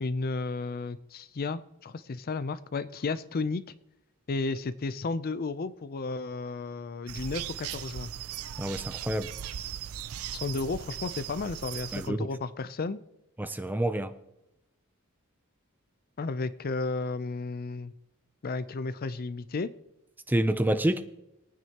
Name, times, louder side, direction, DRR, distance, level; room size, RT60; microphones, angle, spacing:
voice 1, 0.0-3.6 4.3-8.1 10.3-13.0 16.2-17.9 18.4-19.7, left 3 dB, 45° left, 0.5 m, -33 dB
sound 1, 7.1-12.1, right 10 dB, 80° right, 0.4 m, -38 dB
voice 2, 8.6-9.3 11.9-12.3 13.4-14.2 20.3-21.1, right 1 dB, 10° right, 0.5 m, -28 dB
22.5 x 9.3 x 2.9 m
head